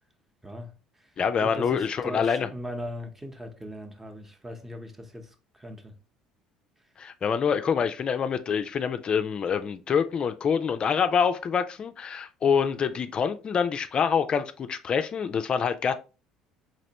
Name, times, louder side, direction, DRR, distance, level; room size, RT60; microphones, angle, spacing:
voice 1, 0.4-5.9, equal, 10° right, 0.8 m, -39 dB
voice 2, 1.2-2.5 7.0-15.9, left 6 dB, 40° left, 0.4 m, -26 dB
4.1 x 3.0 x 2.8 m
hypercardioid pair, 60°, 2 cm